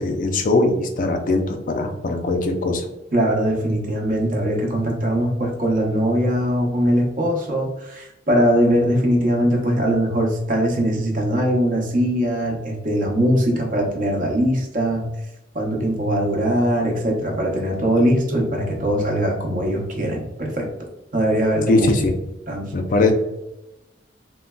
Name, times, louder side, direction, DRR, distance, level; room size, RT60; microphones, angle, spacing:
voice 1, 0.0-2.9 21.7-22.2 22.7-23.1, left 2 dB, 45° left, 5 dB, 0.4 m, -20 dB
voice 2, 3.1-15.1 15.5-20.7 21.1-21.9 22.5-22.7, equal, 45° right, 0 dB, 0.7 m, -21 dB
3.7 x 2.2 x 2.2 m, 0.93 s
head